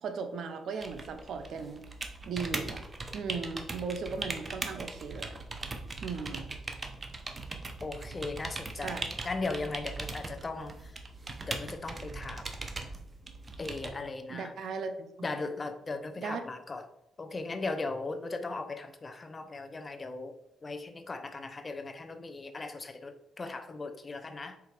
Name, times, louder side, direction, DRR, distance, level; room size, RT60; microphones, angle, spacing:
voice 1, 0.0-1.8 2.2-2.8 3.1-5.4 6.0-6.5 8.8-9.0 14.3-15.3 16.2-16.4, right 5 dB, 65° right, 0.8 m, -37 dB
sound 1, 0.8-13.9, right 3 dB, 25° right, 0.8 m, -40 dB
voice 2, 7.8-11.0 11.5-12.5 13.6-14.6 15.2-16.9 17.2-24.6, left 3 dB, 30° left, 0.6 m, -38 dB
4.8 x 4.0 x 4.9 m
cardioid pair, 90°, 0 cm